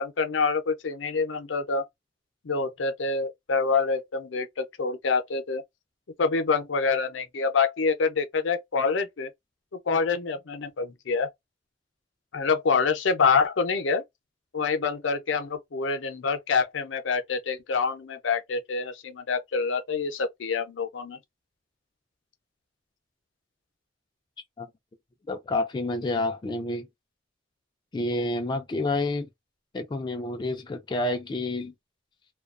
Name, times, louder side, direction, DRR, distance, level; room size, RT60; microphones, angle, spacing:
voice 1, 0.0-1.8 2.4-5.6 6.2-9.3 9.9-11.3 12.3-14.0 14.5-21.2, left 4 dB, 75° left, 0.6 m, -26 dB
voice 2, 25.3-26.9 27.9-29.3 29.7-31.7, left 2 dB, 25° left, 0.3 m, -29 dB
2.3 x 2.2 x 2.3 m
head